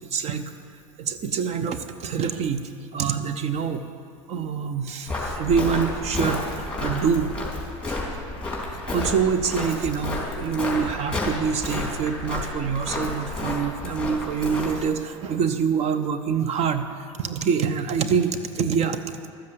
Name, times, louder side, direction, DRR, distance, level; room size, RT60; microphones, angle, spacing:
voice 1, 0.1-0.4 1.0-3.8 4.3-7.3 8.9-19.0, right 6 dB, 40° right, 10 dB, 0.8 m, -25 dB
Walk footsteps, 5.1-14.8, left 2 dB, 5° left, 3.6 m, -31 dB
12.5 x 7.4 x 8.0 m, 2.4 s
hypercardioid pair, 90°, 17 cm